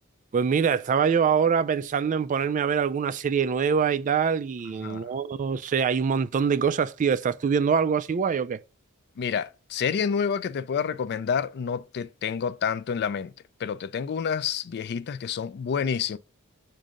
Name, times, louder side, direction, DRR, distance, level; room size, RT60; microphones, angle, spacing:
voice 1, 0.3-8.6, right 6 dB, 35° right, 0.3 m, -24 dB
voice 2, 9.2-13.3 13.6-16.2, left 7 dB, 50° left, 0.3 m, -28 dB
7.4 x 2.6 x 5.1 m
head